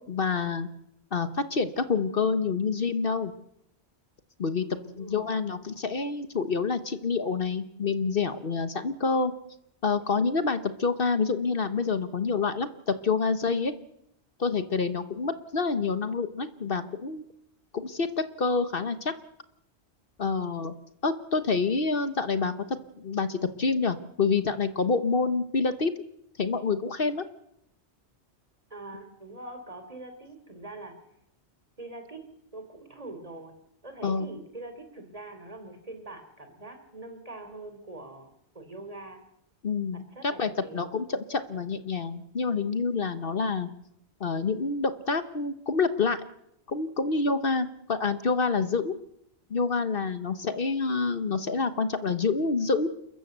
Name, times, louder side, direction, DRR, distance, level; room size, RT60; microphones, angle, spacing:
voice 1, 0.1-0.7 1.1-3.3 4.4-4.7 5.0-9.3 9.8-13.7 14.4-17.2 17.7-18.1 18.4-19.1 20.2-20.7 21.0-22.5 23.0-25.9 26.4-27.2 34.0-34.3 39.6-43.7 44.2-46.2 46.7-48.9 49.5-52.9, left 4 dB, 55° left, 11 dB, 1.3 m, -27 dB
voice 2, 4.8-5.3 28.7-31.0 31.8-32.2 32.5-33.5 33.8-39.2 39.9-40.9, right 2 dB, 35° right, 7 dB, 3.5 m, -43 dB
28.5 x 14.0 x 8.0 m, 0.79 s
omnidirectional pair, 1.1 m